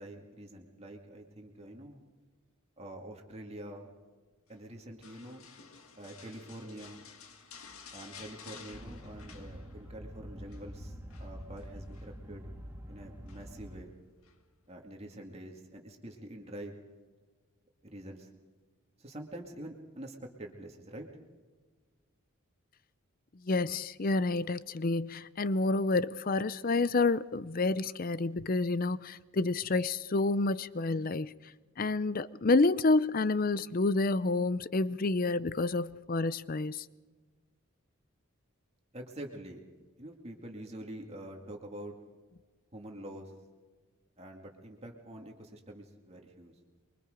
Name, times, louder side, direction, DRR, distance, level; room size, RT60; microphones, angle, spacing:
voice 1, 0.0-2.0 2.8-3.9 4.5-5.4 6.0-7.0 7.9-12.5 12.9-13.9 14.7-16.7 17.8-18.3 19.0-21.1 38.9-39.6 40.0-41.9 42.7-43.3 44.2-46.5, right 1 dB, 30° right, 2.3 m, -46 dB
sound 1, 5.0-10.0 10.3-10.7 11.1-12.1 13.3-13.7 14.2-14.4, left 5 dB, 80° left, 2.0 m, -52 dB
sound 2, 8.7-13.8, equal, 10° right, 2.0 m, -46 dB
voice 2, 23.4-31.3 31.8-36.8, left 3 dB, 40° left, 0.5 m, -29 dB
25.0 x 23.5 x 5.1 m
head